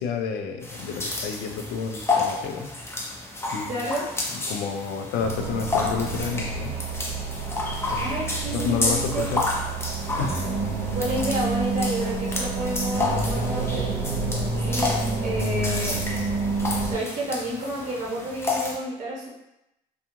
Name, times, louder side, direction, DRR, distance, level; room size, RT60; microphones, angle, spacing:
voice 1, 0.0-2.8 3.5-3.9 4.5-6.8 7.9-8.2 8.5-9.5 10.2-10.5, left 6 dB, 80° left, 4 dB, 0.4 m, -30 dB
sound 1, 0.6-18.8, left 3 dB, 15° left, 0.5 m, -31 dB
voice 2, 3.6-4.0 8.0-9.6 10.9-13.9 14.6-16.0 16.8-19.3, right 1 dB, 45° right, -4 dB, 0.8 m, -30 dB
sound 2, 5.2-16.9, right 3 dB, 75° right, 0.7 m, -29 dB
2.4 x 2.3 x 2.9 m, 0.86 s
cardioid pair, 110°, 17 cm